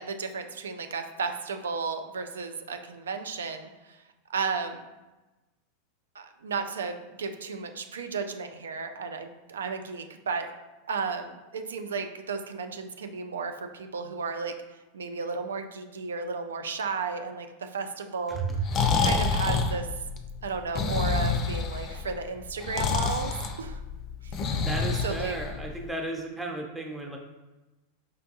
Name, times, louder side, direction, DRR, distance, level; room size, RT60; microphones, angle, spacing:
voice 1, 0.0-4.0 4.3-4.8 6.1-10.5 10.9-14.6 14.9-18.7 19.0-19.9 20.4-23.3 23.6-23.8 24.2-24.3 25.0-25.4, right 5 dB, 85° right, 7 dB, 0.3 m, -33 dB
voice 2, 18.3-18.6 24.6-27.2, right 3 dB, 10° right, 1 dB, 0.7 m, -34 dB
Breathing, 18.4-25.9, left 4 dB, 40° left, 0.4 m, -28 dB
5.1 x 2.2 x 2.7 m, 1.1 s
hypercardioid pair, 100°, 0 cm